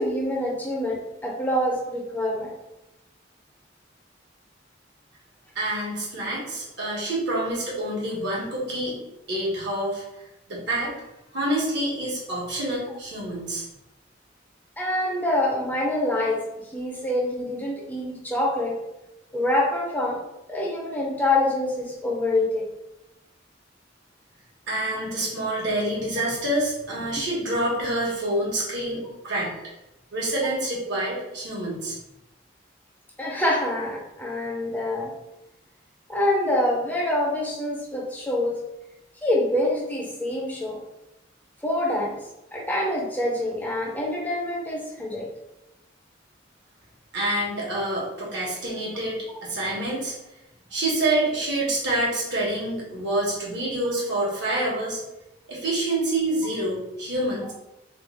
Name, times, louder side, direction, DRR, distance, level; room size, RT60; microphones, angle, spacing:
voice 1, 0.0-2.5 14.8-16.4 16.7-18.7 19.3-20.2 20.5-22.6 33.2-35.1 36.1-38.6 39.2-40.8 41.6-42.2 42.5-45.3, left 1 dB, 10° left, -3 dB, 0.5 m, -25 dB
voice 2, 5.5-9.0 9.3-10.0 10.5-10.9 11.3-13.6 24.7-29.5 30.1-31.9 47.1-50.1 50.7-55.0 55.5-57.5, right 1 dB, 65° right, -4 dB, 1.2 m, -27 dB
3.1 x 2.3 x 3.4 m, 0.92 s
head